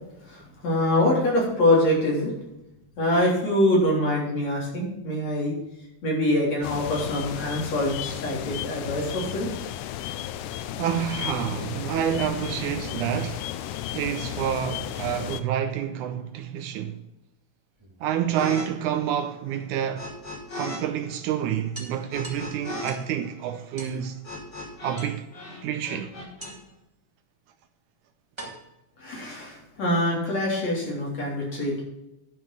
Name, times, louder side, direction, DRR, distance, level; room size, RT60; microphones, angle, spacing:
voice 1, 0.2-2.3 3.0-5.5 6.0-9.5 29.0-31.8, left 1 dB, 50° left, 4.7 m, -24 dB
sound 1, 6.6-15.4, left 11 dB, 80° left, 2.0 m, -34 dB
voice 2, 10.8-13.5 13.9-17.0 18.0-20.1 20.5-24.2 24.8-25.2 25.6-26.1, right 9 dB, 80° right, 2.0 m, -28 dB
sound 2, 17.6-18.8 20.3-20.4 20.7-20.8 21.1-21.2 21.7-23.1 23.8-24.0 25.0-25.5 26.4-26.8 27.7-27.8 28.4-29.7, right 1 dB, 10° right, 1.5 m, -44 dB
sound 3, 18.3-18.7 18.9-20.8 21.1-25.1 25.3-26.5, left 1 dB, 35° left, 4.4 m, -38 dB
11.0 x 6.2 x 6.1 m
omnidirectional pair, 3.9 m